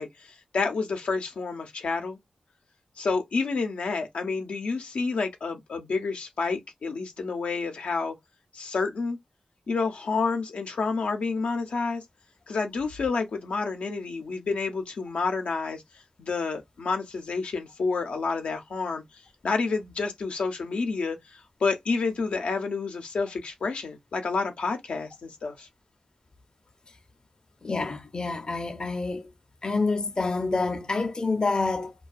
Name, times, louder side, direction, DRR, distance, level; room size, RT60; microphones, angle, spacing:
voice 1, 0.0-2.2 3.0-8.2 8.5-9.2 9.7-12.0 12.5-15.8 16.2-25.7, left 4 dB, 85° left, 0.6 m, -29 dB
voice 2, 27.6-29.3 29.6-31.9, left 3 dB, 40° left, 0.5 m, -27 dB
2.3 x 2.2 x 2.4 m
wide cardioid pair, 75°, 2 cm